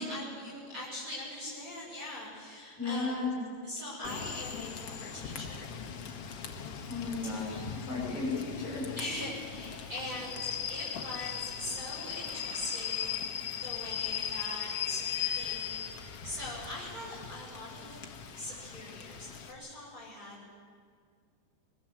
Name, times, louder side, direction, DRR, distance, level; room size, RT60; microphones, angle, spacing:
voice 1, 0.0-3.3 3.6-5.7 7.3-7.5 9.0-15.8 16.2-18.0 18.4-20.5, left 1 dB, 20° right, -6 dB, 7.2 m, -42 dB
voice 2, 2.8-3.3 6.9-8.9, left 3 dB, 40° left, -3 dB, 7.4 m, -34 dB
Rain / Train, 4.0-19.5, left 8 dB, 65° left, 1.4 m, -38 dB
22.5 x 20.5 x 7.5 m, 2.1 s
omnidirectional pair, 5.0 m